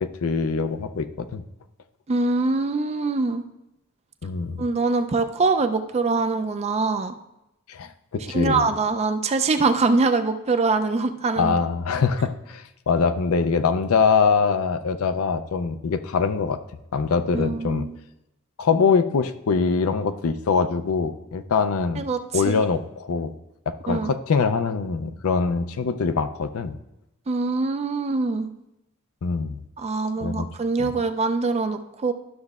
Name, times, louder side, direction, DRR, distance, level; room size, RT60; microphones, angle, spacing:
voice 1, 0.0-1.4 4.2-4.6 7.7-8.7 11.4-16.6 16.9-17.9 18.6-22.0 22.3-23.3 23.7-26.7 29.2-29.6 30.2-30.5 30.8-30.9, left 5 dB, 65° left, 10 dB, 0.4 m, -23 dB
voice 2, 2.1-3.4 4.6-7.1 8.3-11.6 17.3-17.9 22.0-22.2 22.4-22.6 23.9-24.1 27.3-28.5 29.8-32.1, right 3 dB, 30° right, 8 dB, 0.4 m, -23 dB
12.0 x 6.4 x 2.4 m, 0.91 s
head